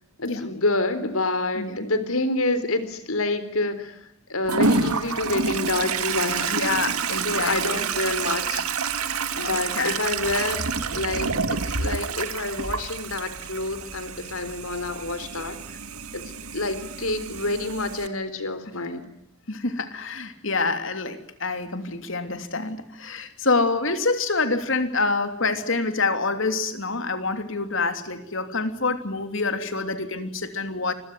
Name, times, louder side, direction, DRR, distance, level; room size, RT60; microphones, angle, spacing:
voice 1, 0.2-4.0 4.3-6.6 7.2-8.6 9.4-10.6 10.9-15.6 16.1-19.1, left 2 dB, 75° left, 12 dB, 3.9 m, -28 dB
Toilet flush, 4.5-18.1, right 5 dB, 85° right, 2.0 m, -28 dB
voice 2, 6.5-7.8 9.4-10.0 19.5-30.9, left 3 dB, 60° left, 9 dB, 3.0 m, -26 dB
28.0 x 22.5 x 9.5 m, 0.79 s
head